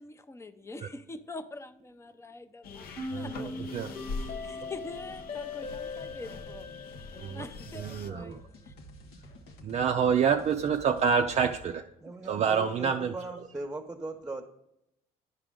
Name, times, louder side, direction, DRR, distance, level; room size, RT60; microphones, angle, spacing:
voice 1, 0.0-2.9 3.1-3.8 4.2-6.7 7.3-8.7, left 3 dB, 15° left, 11 dB, 0.6 m, -44 dB
sound 1, 2.6-8.1, left 3 dB, 60° left, 0.7 m, -43 dB
sound 2, 3.0-8.0, left 3 dB, 40° left, 1.2 m, -40 dB
voice 2, 3.1-3.9 7.2-7.5 7.7-8.4 9.6-11.9 12.3-13.1, right 6 dB, 40° right, 5 dB, 0.4 m, -27 dB
sound 3, 6.0-11.6, right 1 dB, 90° left, 1.1 m, -51 dB
voice 3, 12.0-14.4, right 2 dB, 5° right, 2 dB, 1.1 m, -39 dB
11.0 x 4.9 x 3.7 m, 0.81 s
cardioid pair, 110°, 17 cm